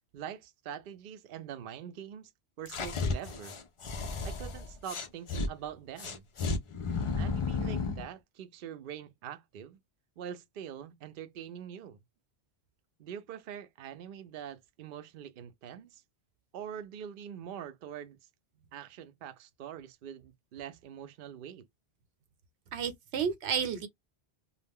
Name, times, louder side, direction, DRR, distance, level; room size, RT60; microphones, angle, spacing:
voice 1, 0.1-2.3 2.6-3.6 4.2-6.3 7.2-9.8 10.2-12.0 13.0-16.0 16.5-18.2 18.7-21.7, right 9 dB, 60° right, 0.6 m, -44 dB
sound 1, 2.7-5.5 6.0-8.1, left 4 dB, 55° left, 0.3 m, -33 dB
voice 2, 22.7-23.9, right 7 dB, 85° right, 0.9 m, -31 dB
2.4 x 2.0 x 3.4 m
omnidirectional pair, 1.1 m